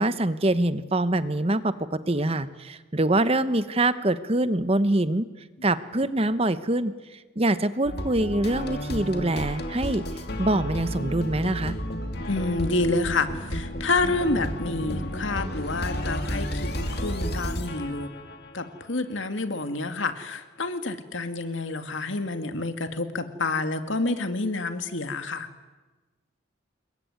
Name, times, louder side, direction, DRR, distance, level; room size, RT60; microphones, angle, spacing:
voice 1, 0.0-5.2 5.6-10.0 10.4-11.7, right 1 dB, 30° right, 13 dB, 1.0 m, -24 dB
sound 1, 7.8-18.9, equal, 50° left, 2.7 m, -32 dB
voice 2, 12.3-18.1 18.5-25.5, left 3 dB, 70° left, 8 dB, 2.1 m, -28 dB
28.5 x 22.0 x 9.5 m, 1.2 s
head